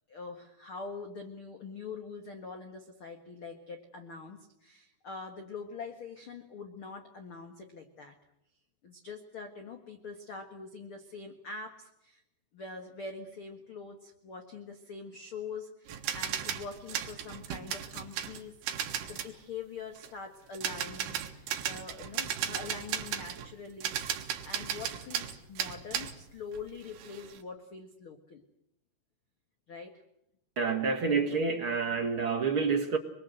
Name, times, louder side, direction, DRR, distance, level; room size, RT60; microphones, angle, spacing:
voice 1, 0.1-8.1 8.8-12.2 12.5-18.6 19.0-28.4 29.7-30.0 31.9-32.1, left 4 dB, 50° left, 5 dB, 1.7 m, -44 dB
sound 1, 15.9-19.3 20.0-20.1 20.5-23.5 23.8-26.2 26.5-27.4, right 9 dB, 75° right, 3.6 m, -36 dB
voice 2, 30.6-33.0, right 5 dB, 55° right, 2 dB, 1.5 m, -28 dB
25.0 x 22.5 x 7.9 m, 0.81 s
omnidirectional pair, 4.8 m